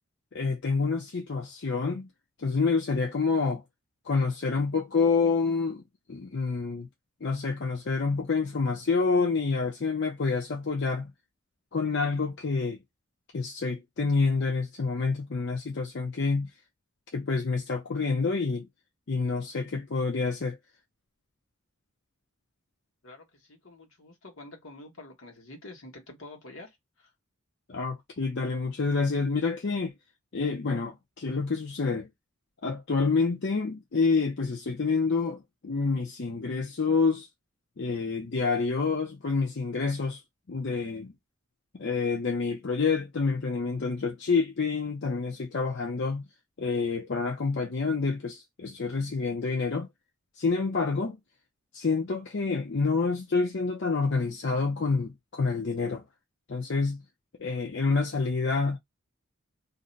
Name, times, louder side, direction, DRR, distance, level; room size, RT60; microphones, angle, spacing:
voice 1, 0.3-2.1 2.4-3.6 4.0-5.8 6.1-6.9 7.2-11.1 11.7-12.8 13.3-16.5 17.1-18.7 19.1-20.6 27.7-29.9 30.3-32.1 32.6-37.3 37.8-40.2 40.5-41.1 41.8-46.3 46.6-49.9 50.4-51.2 51.7-56.0 56.5-57.0 57.4-58.8, left 4 dB, 55° left, 0.6 m, -28 dB
voice 2, 23.0-27.1, left 2 dB, 80° left, 1.2 m, -47 dB
2.6 x 2.2 x 3.9 m
head